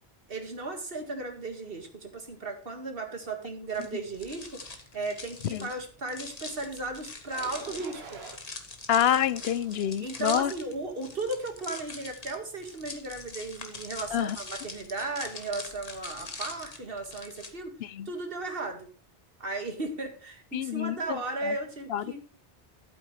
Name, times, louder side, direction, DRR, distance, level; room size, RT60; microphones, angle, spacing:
voice 1, 0.3-8.2 10.0-17.8 18.1-18.9 19.4-22.2, right 2 dB, 65° right, 5 dB, 2.1 m, -35 dB
sound 1, 3.7-17.5, left 3 dB, 40° left, 1.5 m, -43 dB
sound 2, 7.3-8.4 8.9-10.0 10.5-10.9, right 4 dB, 85° right, 1.6 m, -47 dB
voice 2, 8.9-10.5 14.1-14.4 17.8-18.1 20.5-21.2 21.4-21.5 21.9-22.2, left 10 dB, 80° left, 18 dB, 0.8 m, -27 dB
12.0 x 8.7 x 3.2 m, 0.42 s
omnidirectional pair, 1.0 m